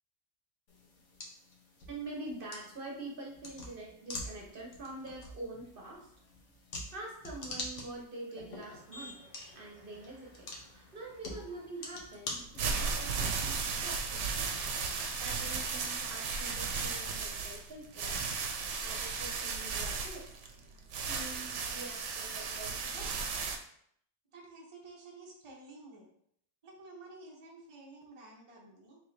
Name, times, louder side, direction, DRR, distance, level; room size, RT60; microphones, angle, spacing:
sound 1, 0.7-13.0, left 2 dB, 90° left, 1.2 m, -46 dB
voice 1, 1.9-6.1 6.9-9.2 9.5-14.5 15.2-18.2 18.8-20.4 21.0-23.3, right 2 dB, 50° right, -2 dB, 1.1 m, -45 dB
Motor vehicle (road), 8.6-14.1, equal, 50° left, 1.9 m, -57 dB
sound 2, 12.4-23.6, right 5 dB, 80° right, 0.9 m, -35 dB
voice 2, 24.3-26.1 26.6-29.0, right 2 dB, 30° right, -3 dB, 0.8 m, -52 dB
4.7 x 3.6 x 2.6 m, 0.68 s
omnidirectional pair, 1.2 m